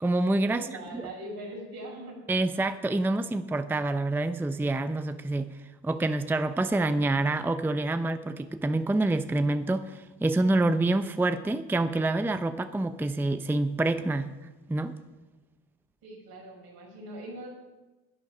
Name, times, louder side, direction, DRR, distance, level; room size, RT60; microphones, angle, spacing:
voice 1, 0.0-0.7 0.9-1.0 2.3-5.5 5.8-14.3 14.7-15.0, right 2 dB, 5° right, 11 dB, 0.5 m, -27 dB
voice 2, 0.5-2.2 16.0-17.5, right 1 dB, 75° right, -1 dB, 4.8 m, -41 dB
11.0 x 9.3 x 5.3 m, 1.1 s
supercardioid pair, 70°, 38 cm